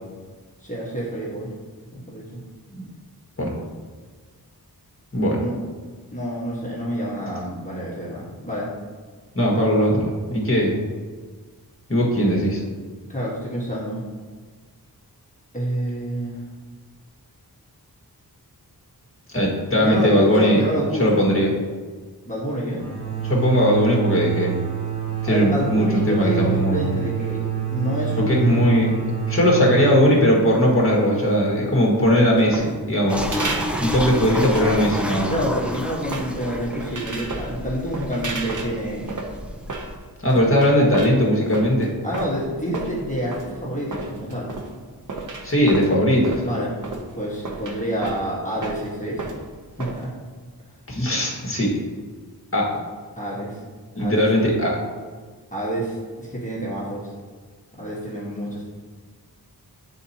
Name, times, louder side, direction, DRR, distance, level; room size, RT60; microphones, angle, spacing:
voice 1, 0.6-1.5 1.9-2.4 5.4-5.5 6.1-8.7 13.1-14.0 15.5-16.4 19.8-21.3 22.3-22.8 25.2-27.4 27.7-28.7 35.3-39.1 42.0-44.5 46.4-46.7 47.1-49.2 49.8-50.1 53.2-53.6 54.0-54.3 55.5-57.1 57.8-58.7, equal, 20° left, -6 dB, 1.5 m, -28 dB
voice 2, 9.3-10.8 11.9-12.6 19.3-20.6 21.0-21.5 23.2-24.6 25.2-27.0 28.2-28.9 29.3-33.3 33.8-35.3 40.2-41.9 45.4-46.4 50.9-51.7 52.5-52.7 54.0-54.8, equal, 35° left, -3 dB, 1.7 m, -19 dB
sound 1, 22.8-32.2, right 9 dB, 80° right, 1.8 m, -28 dB
sound 2, 32.0-50.0, right 3 dB, 55° right, 0.9 m, -34 dB
sound 3, 33.1-39.9, equal, 5° right, 0.5 m, -30 dB
9.0 x 4.3 x 2.9 m, 1.5 s
wide cardioid pair, 80°, 38 cm